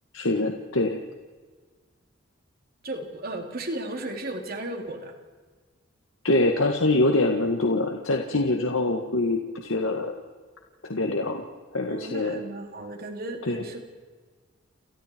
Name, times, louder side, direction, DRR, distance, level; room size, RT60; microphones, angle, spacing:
voice 1, 0.1-1.0 6.2-10.1 10.8-11.4 11.7-12.4 13.5-13.6, left 2 dB, 85° left, 2 dB, 1.9 m, -24 dB
voice 2, 2.8-5.1 11.9-13.8, right 1 dB, 45° right, 3 dB, 3.3 m, -35 dB
29.5 x 29.0 x 4.7 m, 1.5 s
head